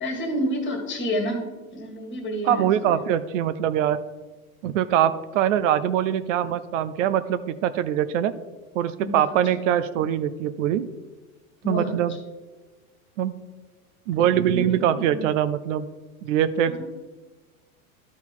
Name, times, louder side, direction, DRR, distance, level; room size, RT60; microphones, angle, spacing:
voice 1, 0.0-2.9 9.0-9.3 11.6-12.0 14.5-15.3 16.7-16.9, equal, 25° left, 5 dB, 1.8 m, -30 dB
voice 2, 2.5-4.0 4.6-8.3 8.7-10.9 11.6-12.2 13.2-13.4 14.1-15.9 16.2-16.9, right 10 dB, 60° right, 13 dB, 0.5 m, -23 dB
12.0 x 4.0 x 4.3 m, 1.2 s
hypercardioid pair, 90°, 42 cm